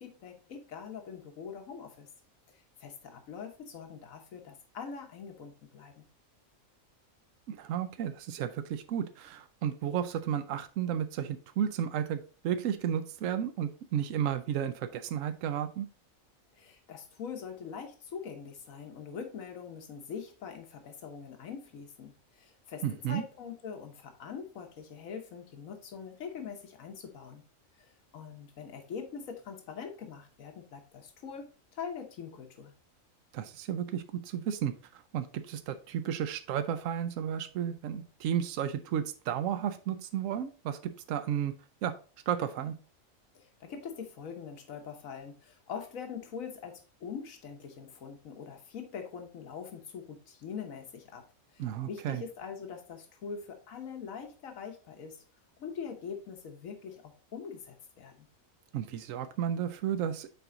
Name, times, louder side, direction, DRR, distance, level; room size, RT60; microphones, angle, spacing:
voice 1, 0.0-2.1 2.5-6.1 16.5-27.4 27.8-32.7 43.3-51.2 51.5-55.2 55.6-58.3, left 6 dB, 85° left, 4 dB, 1.4 m, -43 dB
voice 2, 7.5-15.9 22.8-23.2 33.3-41.5 41.8-41.9 42.3-42.8 51.6-52.2 58.7-60.3, right 9 dB, 80° right, 10 dB, 1.0 m, -33 dB
6.8 x 4.3 x 3.8 m, 0.37 s
omnidirectional pair, 1.4 m